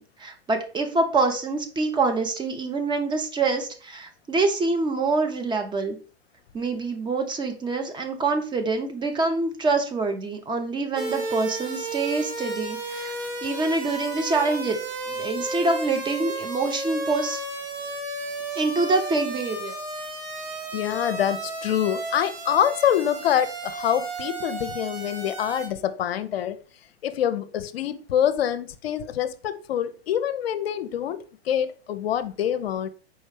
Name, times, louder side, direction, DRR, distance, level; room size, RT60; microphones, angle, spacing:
voice 1, 0.0-6.0 6.5-13.1 13.4-14.8 15.1-17.4 18.6-19.8, right 3 dB, 15° right, 0.6 m, -25 dB
sound 1, 11.0-25.7, right 2 dB, 60° right, 1.6 m, -33 dB
voice 2, 20.7-26.6 27.0-32.9, left 10 dB, 70° left, 0.5 m, -25 dB
4.7 x 3.2 x 3.2 m
hypercardioid pair, 100°, 31 cm